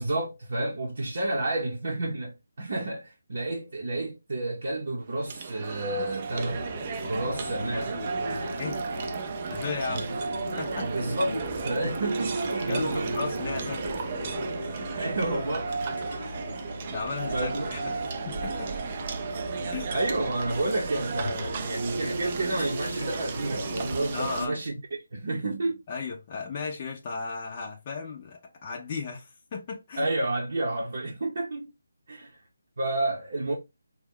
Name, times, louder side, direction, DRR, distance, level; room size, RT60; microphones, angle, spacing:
voice 1, 0.0-6.6 7.0-8.0 9.9-10.0 10.8-11.4 11.6-13.2 14.7-15.9 17.3-18.0 19.9-24.8 25.1-25.8 30.0-31.7 32.1-32.3 32.8-33.6, right 2 dB, 60° right, 0.7 m, -30 dB
sound 1, 5.0-24.5, right 5 dB, 30° right, 0.3 m, -34 dB
sound 2, 6.4-24.5, left 2 dB, 80° left, 0.6 m, -39 dB
voice 2, 9.5-10.1 10.6-11.3 12.7-13.8 16.9-18.7 19.7-19.9 24.1-24.6 25.9-30.1, left 5 dB, 30° left, 0.5 m, -35 dB
2.7 x 2.2 x 3.5 m
figure-of-eight pair, 165°, 0 cm